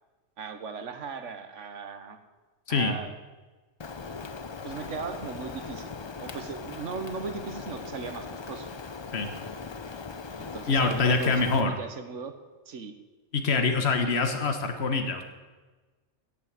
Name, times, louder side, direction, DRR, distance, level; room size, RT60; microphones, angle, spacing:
voice 1, 0.4-2.2 2.7-3.1 4.6-8.7 10.4-12.3 12.7-12.9, right 5 dB, 80° right, 8 dB, 1.5 m, -38 dB
Rain, 3.8-11.6, left 4 dB, 35° left, 0.4 m, -39 dB
voice 2, 10.7-11.7 13.3-15.2, left 4 dB, 60° left, 6 dB, 1.6 m, -25 dB
16.5 x 7.0 x 7.5 m, 1.3 s
omnidirectional pair, 1.2 m